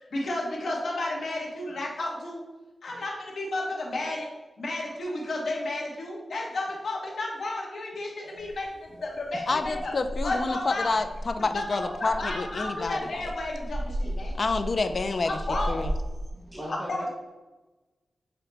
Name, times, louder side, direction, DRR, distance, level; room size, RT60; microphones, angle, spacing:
voice 1, 0.1-2.4 2.8-4.3 4.6-8.7 9.0-9.9 10.2-10.9 11.5-11.6 12.0-14.3 15.2-15.8 16.7-17.1, left 2 dB, 70° left, -2 dB, 1.1 m, -32 dB
sound 1, 8.4-16.3, equal, 65° right, 1.1 m, -36 dB
voice 2, 9.5-13.3 14.4-15.4 15.7-15.9, left 3 dB, 45° left, 8 dB, 0.3 m, -28 dB
voice 3, 16.3-17.1, equal, 20° right, -4 dB, 0.7 m, -41 dB
5.8 x 2.1 x 3.9 m, 1.1 s
wide cardioid pair, 150°, 0 cm